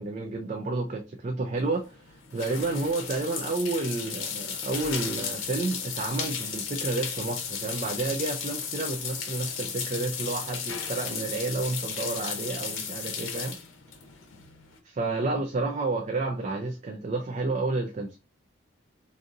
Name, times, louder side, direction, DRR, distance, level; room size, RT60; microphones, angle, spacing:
voice 1, 0.0-13.6 14.8-18.2, right 3 dB, 35° right, 0.3 m, -30 dB
sound 1, 1.6-14.8, left 7 dB, 75° left, 0.7 m, -35 dB
2.6 x 2.5 x 3.7 m
head